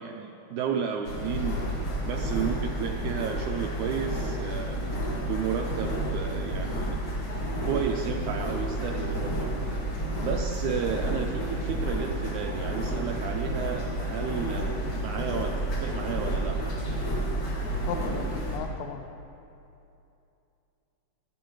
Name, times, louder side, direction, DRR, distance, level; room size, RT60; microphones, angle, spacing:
voice 1, 0.0-5.0 5.2-7.0 7.6-9.8 10.2-15.5 15.8-16.6, right 7 dB, 80° right, 2 dB, 1.8 m, -33 dB
sound 1, 1.0-18.6, right 1 dB, 55° left, 3.5 m, -30 dB
voice 2, 17.9-19.0, left 7 dB, 80° left, 7 dB, 2.4 m, -36 dB
19.5 x 12.5 x 3.2 m, 2.8 s
omnidirectional pair, 4.0 m